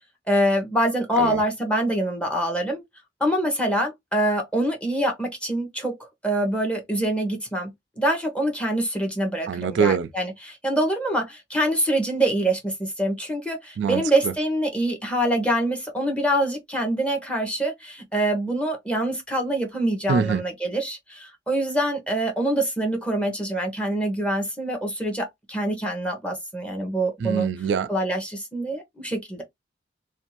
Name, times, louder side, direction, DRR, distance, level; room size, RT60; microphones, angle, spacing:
voice 1, 0.3-2.8 3.2-6.0 6.2-27.5 27.9-29.4, right 1 dB, 5° left, 0.8 m, -25 dB
voice 2, 9.5-10.1 13.8-14.3 20.1-20.4 27.2-27.9, right 6 dB, 75° right, 0.3 m, -24 dB
2.6 x 2.3 x 2.8 m
head